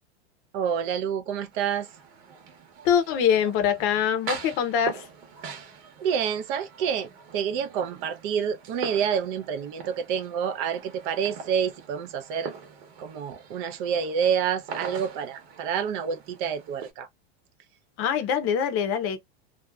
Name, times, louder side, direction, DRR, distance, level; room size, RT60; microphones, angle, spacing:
voice 1, 0.5-1.9 6.0-12.5 13.0-17.1, right 7 dB, 50° right, 0.6 m, -28 dB
sound 1, 1.5-16.9, right 6 dB, 65° right, 1.0 m, -42 dB
voice 2, 2.8-5.1 18.0-19.2, left 8 dB, 45° left, 0.7 m, -24 dB
2.6 x 2.3 x 2.2 m
supercardioid pair, 140°, 32 cm